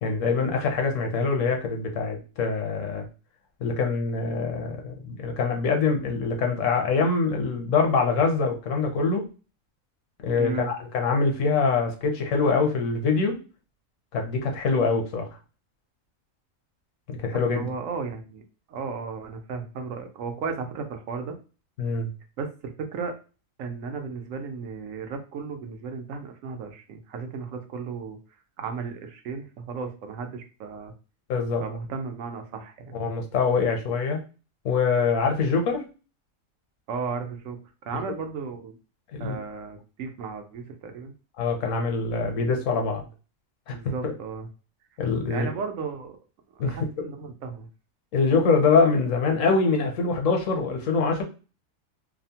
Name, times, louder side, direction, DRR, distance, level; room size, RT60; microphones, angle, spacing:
voice 1, 0.0-3.0 3.6-9.2 10.2-13.4 14.1-15.3 17.1-17.7 21.8-22.1 31.3-31.6 32.9-34.2 34.6-35.8 39.1-39.4 41.4-43.0 43.7-43.8 45.0-45.5 46.6-46.8 48.1-51.2, left 4 dB, 75° left, 3 dB, 1.0 m, -24 dB
voice 2, 10.4-10.7 17.5-18.4 18.7-21.4 22.4-23.1 23.6-28.2 28.6-30.9 31.6-32.9 36.9-37.6 37.9-38.8 39.2-41.1 43.7-44.5 45.3-46.2 46.6-47.7, right 5 dB, 85° right, 5 dB, 1.0 m, -34 dB
2.7 x 2.0 x 2.7 m, 0.34 s
omnidirectional pair, 1.4 m